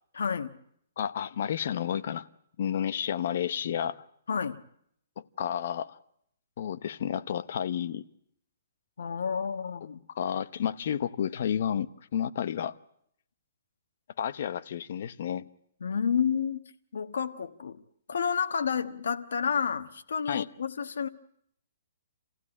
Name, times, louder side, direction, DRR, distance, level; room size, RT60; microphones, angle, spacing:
voice 1, 0.1-0.6 4.3-4.6 9.0-10.0 15.8-16.6 16.9-17.8 18.1-21.1, left 6 dB, 85° left, 1.3 m, -30 dB
voice 2, 1.0-2.3 2.6-4.0 5.2-6.0 6.6-8.0 10.1-12.7 14.2-15.5 20.3-20.5, left 9 dB, 50° left, 0.9 m, -31 dB
27.5 x 16.0 x 9.9 m
hypercardioid pair, 165°, 0 cm